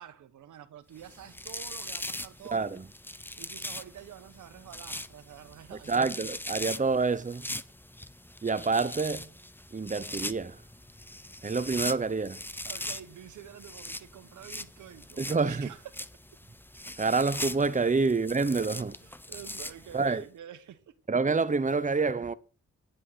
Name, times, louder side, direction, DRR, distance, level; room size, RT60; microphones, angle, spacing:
voice 1, 0.0-2.7 3.4-5.9 12.0-12.2 12.6-15.8 18.5-20.9, right 10 dB, 85° right, 1.2 m, -47 dB
sound 1, 1.0-20.2, left 1 dB, 5° left, 0.8 m, -41 dB
voice 2, 2.5-2.9 5.7-7.4 8.4-9.3 9.7-10.6 11.4-12.4 15.2-15.7 17.0-18.9 19.9-20.2 21.1-22.3, right 4 dB, 25° right, 1.0 m, -27 dB
10.0 x 7.7 x 5.7 m
supercardioid pair, 45°, 29 cm